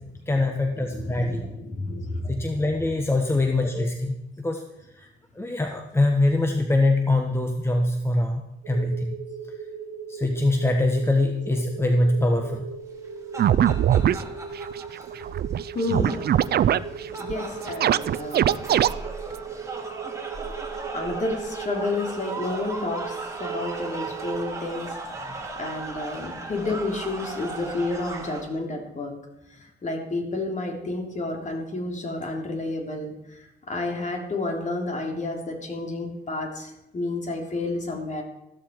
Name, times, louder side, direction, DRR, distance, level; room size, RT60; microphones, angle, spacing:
voice 1, 0.3-1.4 2.3-4.6 5.0-5.1 5.4-8.4 8.7-9.1 10.1-12.6, left 2 dB, 10° left, 3 dB, 1.3 m, -23 dB
voice 2, 0.9-2.4 3.7-3.8 15.7-16.1 17.2-18.6 20.9-24.9 25.3-29.1 29.6-33.1 33.7-38.2, left 2 dB, 40° left, 2 dB, 3.3 m, -30 dB
sound 1, 8.6-24.6, right 7 dB, 80° right, 1.2 m, -38 dB
sound 2, 13.0-28.4, right 3 dB, 15° right, 3.0 m, -37 dB
sound 3, 13.4-14.2 14.7-14.8 15.0-15.1 15.2-15.6 15.9-16.8 17.1-17.3 17.7-18.9, right 10 dB, 55° right, 0.5 m, -20 dB
14.5 x 12.5 x 4.7 m, 0.92 s
cardioid pair, 90°, 20 cm